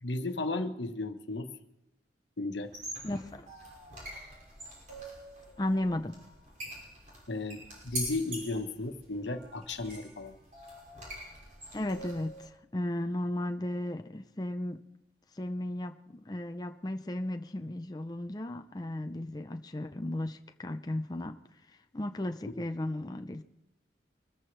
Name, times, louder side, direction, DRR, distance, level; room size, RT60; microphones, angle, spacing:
voice 1, 0.0-1.5 2.4-2.7 7.3-10.4, left 2 dB, 90° left, 1.2 m, -34 dB
sound 1, 2.6-12.5, right 1 dB, 45° right, 5.7 m, -44 dB
voice 2, 3.0-3.5 5.6-6.2 11.7-14.8 15.3-21.4 21.9-23.4, left 1 dB, 20° left, 0.5 m, -35 dB
24.0 x 14.0 x 3.3 m
head